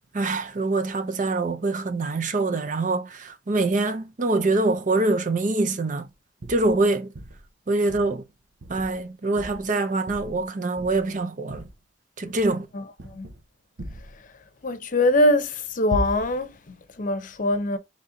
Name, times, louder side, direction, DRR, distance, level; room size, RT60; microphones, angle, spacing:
voice 1, 0.1-6.1 6.5-7.1 7.7-8.2 8.7-11.7 12.2-12.7, right 2 dB, 45° right, 0.6 m, -24 dB
sound 1, 6.4-6.8 7.1-7.5 7.9-8.2 8.6-9.0 9.4-9.7 10.1-10.5 10.8-11.2 11.5-11.7 12.3-12.6 13.0-13.4 13.8-14.2 15.9-16.5, equal, 85° right, 0.7 m, -36 dB
voice 2, 14.6-17.8, left 1 dB, 50° left, 0.7 m, -23 dB
4.2 x 3.1 x 3.8 m
head